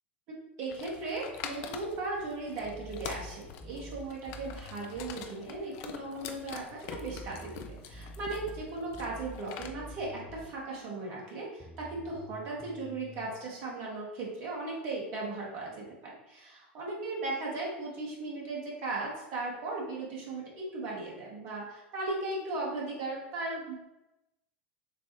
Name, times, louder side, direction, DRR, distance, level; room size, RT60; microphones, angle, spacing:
voice 1, 0.6-23.7, right 2 dB, 50° right, -3 dB, 1.4 m, -37 dB
sound 1, 0.7-9.7, left 8 dB, 50° left, 0.5 m, -45 dB
sound 2, 2.6-5.2 6.9-10.6 11.6-13.3, right 1 dB, 15° left, 1.1 m, -47 dB
6.7 x 2.4 x 3.0 m, 0.94 s
figure-of-eight pair, 80°, 6 cm